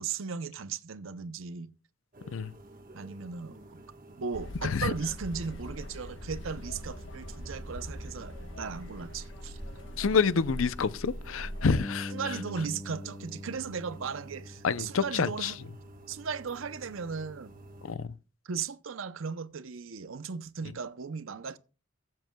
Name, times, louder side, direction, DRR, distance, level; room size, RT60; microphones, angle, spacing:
voice 1, 0.0-1.7 2.9-3.8 4.2-9.6 12.1-15.6 16.1-17.5 18.4-21.6, right 5 dB, 80° right, 0.7 m, -37 dB
sound 1, 2.1-17.9, right 2 dB, 45° right, 1.4 m, -53 dB
sound 2, 4.3-11.8, equal, 65° left, 1.3 m, -41 dB
voice 2, 10.0-12.4 14.6-15.5 17.8-18.1, left 5 dB, 85° left, 0.6 m, -28 dB
Bass guitar, 11.8-18.0, left 1 dB, 15° left, 0.4 m, -44 dB
22.5 x 7.6 x 2.3 m
head